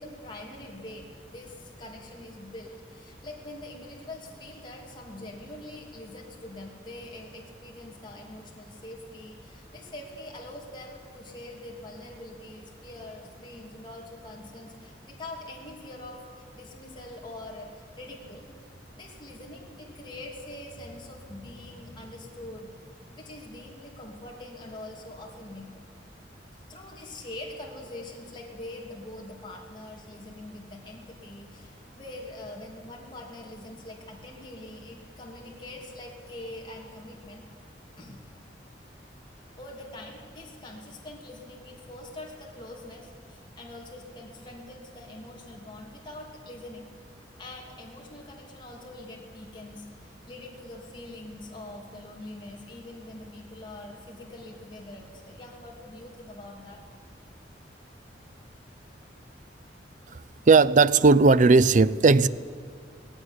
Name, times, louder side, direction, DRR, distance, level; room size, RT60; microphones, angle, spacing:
voice 1, 0.0-18.5 18.9-25.7 26.7-37.4 38.0-38.2 39.6-46.9 47.4-56.8, left 1 dB, 25° left, -2 dB, 3.0 m, -44 dB
voice 2, 60.5-62.3, right 4 dB, 45° right, 17 dB, 0.5 m, -17 dB
18.0 x 16.5 x 9.9 m, 2.2 s
head